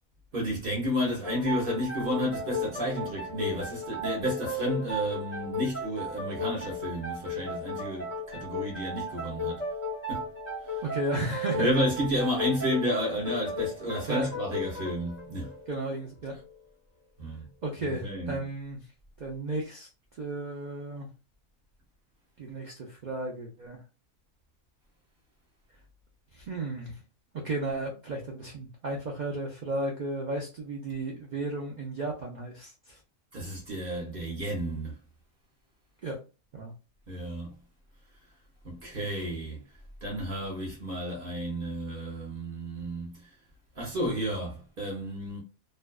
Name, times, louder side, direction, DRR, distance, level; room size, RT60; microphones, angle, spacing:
voice 1, 0.3-9.6 10.1-10.3 10.6-10.8 11.5-15.5 17.2-17.4 17.8-18.4 33.3-35.0 37.1-37.6 38.6-39.6 40.0-43.3 43.7-45.4, equal, 50° right, 0.7 m, -31 dB
sound 1, 1.2-16.6, left 2 dB, 20° left, 0.3 m, -35 dB
voice 2, 10.8-11.7 14.1-14.3 15.7-16.4 17.6-18.9 19.2-19.9 20.2-21.1 22.4-23.8 26.3-27.0 27.4-33.0 36.0-36.2 36.5-36.7, right 2 dB, 85° right, 0.4 m, -34 dB
2.5 x 2.2 x 2.2 m
omnidirectional pair, 1.4 m